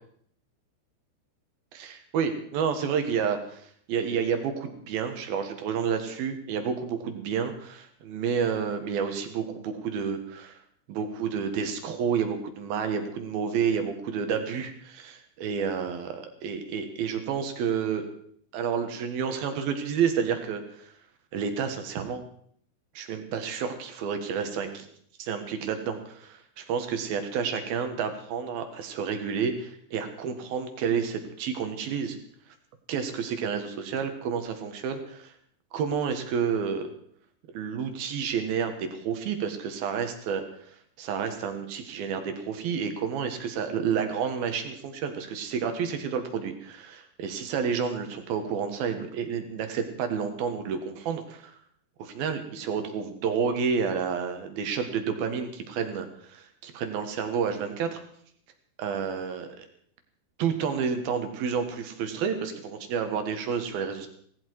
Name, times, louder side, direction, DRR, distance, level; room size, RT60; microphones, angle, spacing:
voice 1, 1.7-10.6 10.9-18.1 18.5-20.9 21.3-22.2 22.9-24.9 25.2-32.2 32.9-35.3 35.7-36.9 37.5-51.6 52.0-58.0 58.8-59.7 60.4-64.1, right 6 dB, 65° right, 7 dB, 2.8 m, -30 dB
18.0 x 16.0 x 4.7 m, 0.63 s
omnidirectional pair, 5.7 m